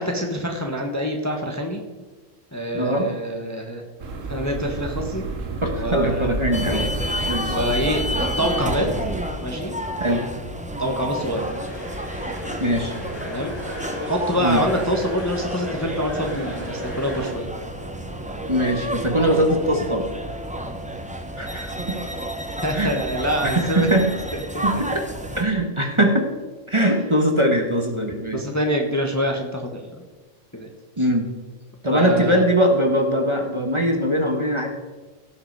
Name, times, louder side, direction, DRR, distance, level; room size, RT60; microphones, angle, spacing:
voice 1, 0.0-1.8 2.5-3.8 4.3-5.3 5.7-6.4 7.5-8.9 9.4-9.7 10.8-11.5 13.2-13.5 14.0-17.5 22.6-23.9 24.5-24.6 28.3-30.0 30.5-30.7 31.0-31.1 31.9-32.4, equal, 15° left, 2 dB, 1.2 m, -25 dB
voice 2, 2.7-3.1 5.6-6.9 7.2-7.6 10.0-10.2 12.6-12.9 14.4-14.6 18.5-20.0 21.4-21.7 22.7-22.9 23.4-24.1 24.6-25.0 25.4-26.3 26.7-28.4 31.0-31.3 31.8-34.7, equal, 25° right, 2 dB, 1.4 m, -21 dB
sound 1, 4.0-9.2, right 3 dB, 85° right, 1.5 m, -31 dB
sound 2, 6.5-25.4, equal, 5° right, 0.9 m, -31 dB
sound 3, 11.1-17.3, equal, 55° left, 4.5 m, -34 dB
17.0 x 6.9 x 4.7 m, 1.3 s
omnidirectional pair, 1.3 m